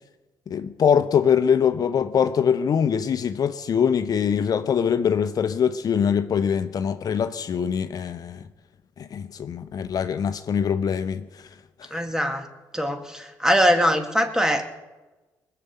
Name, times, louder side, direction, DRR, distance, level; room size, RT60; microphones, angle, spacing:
voice 1, 0.5-8.4 9.0-11.5 11.9-12.0, left 7 dB, 55° left, 0.8 m, -23 dB
voice 2, 11.9-12.4 12.7-14.7, equal, 10° right, 2.1 m, -22 dB
20.0 x 6.8 x 8.3 m
supercardioid pair, 65°, 8 cm